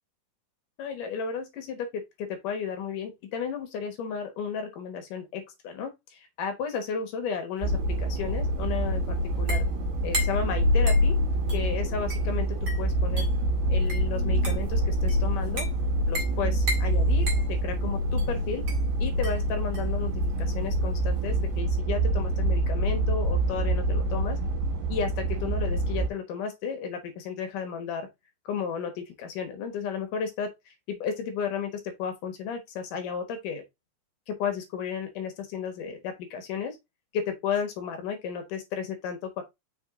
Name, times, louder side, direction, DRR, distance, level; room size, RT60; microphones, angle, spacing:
voice 1, 0.8-9.0 9.4-9.6 10.0-11.1 11.5-13.3 13.7-15.7 16.1-17.3 17.6-18.6 19.0-20.1 20.4-24.4 24.9-28.1 28.5-33.6 34.3-36.8 37.1-39.4, left 6 dB, 65° left, 2.6 m, -33 dB
sound 1, 7.6-21.6, equal, 40° right, 2.5 m, -38 dB
sound 2, 7.6-26.1, right 1 dB, 65° right, 3.5 m, -26 dB
6.2 x 4.5 x 3.6 m
omnidirectional pair, 4.2 m